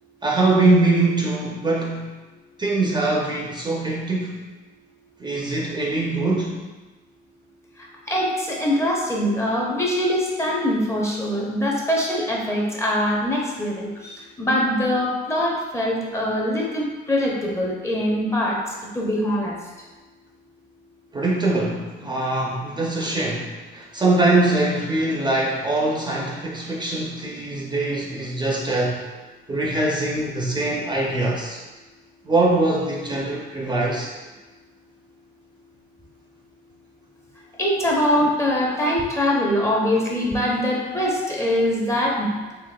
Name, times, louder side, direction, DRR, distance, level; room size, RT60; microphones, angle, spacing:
voice 1, 0.2-2.1 2.6-4.4 5.2-6.6 21.1-29.0 29.5-31.6 32.2-34.1, right 2 dB, 20° right, -3 dB, 0.6 m, -22 dB
voice 2, 8.1-18.6 18.9-19.6 37.6-42.3, left 1 dB, 15° left, -3 dB, 0.7 m, -23 dB
4.0 x 2.8 x 2.2 m, 1.2 s
cardioid pair, 90°, 20 cm